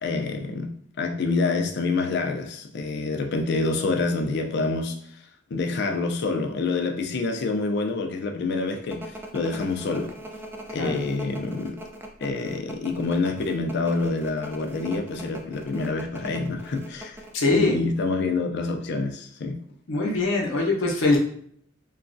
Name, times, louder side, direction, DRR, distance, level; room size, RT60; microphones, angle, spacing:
voice 1, 0.0-0.7 1.0-5.0 5.5-10.1 10.7-11.8 12.2-19.6, left 3 dB, 60° left, 0.4 m, -27 dB
sound 1, 8.9-17.3, right 1 dB, 10° right, 0.3 m, -40 dB
voice 2, 17.3-17.8 19.9-21.2, left 3 dB, 85° left, 0.7 m, -22 dB
3.0 x 2.3 x 2.5 m
head